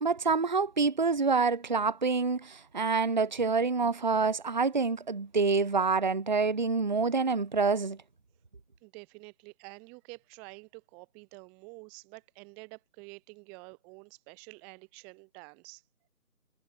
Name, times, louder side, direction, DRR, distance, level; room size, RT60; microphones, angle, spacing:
voice 1, 0.0-8.0, right 4 dB, 30° right, 1.0 m, -27 dB
voice 2, 8.8-15.8, right 34 dB, 5° right, 1.3 m, -49 dB
figure-of-eight pair, 165°, 44 cm